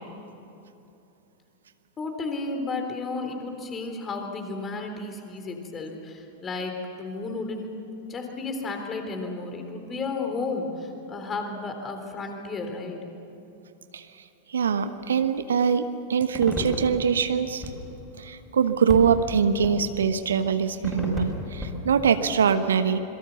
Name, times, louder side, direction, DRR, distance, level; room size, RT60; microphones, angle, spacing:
voice 1, 2.0-7.8 8.1-13.0, left 3 dB, 20° left, 4 dB, 3.7 m, -33 dB
voice 2, 14.5-17.6 18.2-23.0, right 7 dB, 65° right, 10 dB, 1.1 m, -23 dB
sound 1, 16.3-22.1, left 2 dB, 5° left, 5.8 m, -34 dB
26.0 x 22.5 x 7.1 m, 2.9 s
figure-of-eight pair, 90°, 0 cm